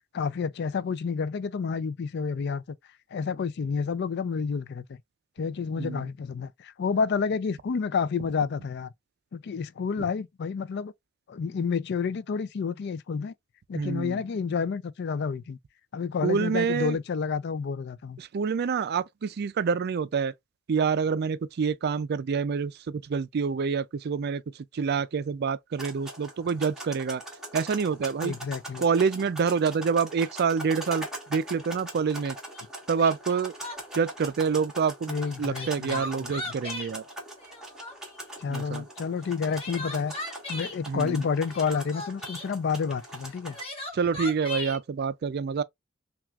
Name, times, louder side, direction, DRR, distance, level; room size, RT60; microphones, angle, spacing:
voice 1, 0.1-2.6 3.1-4.8 5.4-8.9 9.3-10.9 11.3-13.3 13.7-15.6 15.9-18.2 28.2-28.9 35.1-36.5 38.4-40.1 40.5-43.6, left 5 dB, 55° left, 0.4 m, -29 dB
voice 2, 13.7-14.2 16.2-17.0 18.2-20.3 20.7-24.4 24.7-27.2 27.5-28.4 28.8-32.4 32.9-33.5 33.9-35.1 35.4-37.0 38.5-38.8 40.9-41.2 43.9-45.6, right 5 dB, 50° right, 0.4 m, -27 dB
sound 1, 25.7-43.6, right 1 dB, 5° right, 1.3 m, -42 dB
Crying sobbing, 32.5-32.6 33.0-34.0 35.2-36.9 37.4-38.2 39.2-40.8 41.4-42.5 43.3-44.8, left 2 dB, 30° left, 1.1 m, -37 dB
5.8 x 2.4 x 2.4 m
head